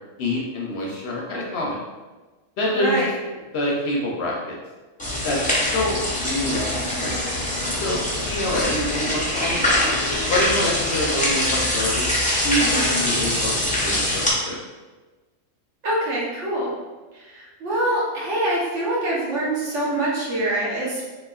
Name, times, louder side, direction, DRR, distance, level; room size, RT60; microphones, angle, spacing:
voice 1, 0.2-1.8 2.6-3.1 3.5-4.6 5.2-5.4 5.7-7.1 7.7-9.8 10.3-12.1 12.4-13.5 13.8-14.6, left 1 dB, 65° left, -3 dB, 0.8 m, -26 dB
voice 2, 2.7-3.1 15.8-16.8 17.1-21.0, right 1 dB, 70° right, -5 dB, 1.2 m, -25 dB
sound 1, 5.0-14.3, left 1 dB, 10° left, 0.4 m, -23 dB
3.1 x 3.0 x 2.3 m, 1.2 s
omnidirectional pair, 1.3 m